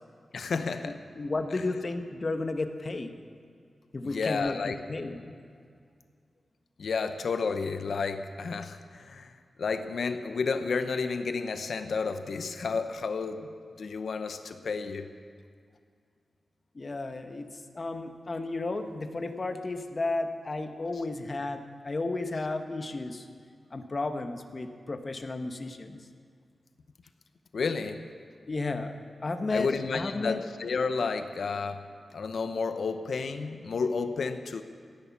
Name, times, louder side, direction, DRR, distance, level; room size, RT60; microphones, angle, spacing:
voice 1, 0.3-1.0 4.0-4.8 6.8-9.3 9.6-13.5 13.8-15.1 27.5-28.0 29.5-31.8 32.1-34.6, left 4 dB, 75° left, 9 dB, 0.8 m, -31 dB
voice 2, 1.1-3.1 3.9-5.3 16.7-17.5 17.7-23.3 23.7-26.0 28.5-29.0 29.2-29.7 29.9-30.4, left 2 dB, 35° left, 7 dB, 1.1 m, -33 dB
16.5 x 11.0 x 7.1 m, 2.2 s
wide cardioid pair, 125°, 0 cm